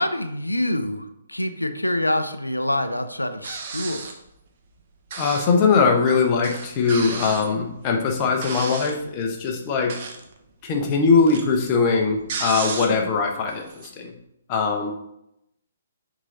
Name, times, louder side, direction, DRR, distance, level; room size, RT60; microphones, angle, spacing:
voice 1, 0.0-4.1, left 1 dB, 85° left, 9 dB, 0.5 m, -26 dB
sound 1, 3.4-4.3 5.1-5.6 5.9-6.0 6.4-9.0 9.7-10.4 10.6-13.1 13.5-13.9, right 5 dB, 40° right, 0.9 m, -33 dB
voice 2, 5.2-9.9 10.6-14.1 14.5-14.9, left 4 dB, 30° left, 2 dB, 0.9 m, -21 dB
6.1 x 4.0 x 3.9 m, 0.81 s
figure-of-eight pair, 130°, 0 cm